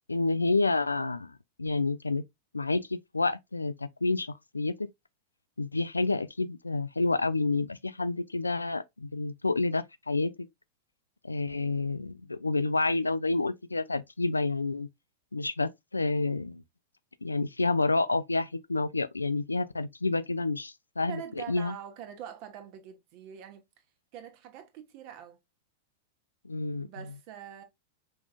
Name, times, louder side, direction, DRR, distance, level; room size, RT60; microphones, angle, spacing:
voice 1, 0.1-2.2 2.5-4.9 5.6-10.3 11.2-14.9 15.3-16.6 17.2-21.2 21.5-21.7 26.4-27.1, left 3 dB, 80° left, 0.3 m, -29 dB
voice 2, 21.1-23.6 24.1-25.4 26.8-27.6, right 9 dB, 45° right, 1.1 m, -44 dB
5.3 x 3.6 x 2.4 m
figure-of-eight pair, 90°, 0 cm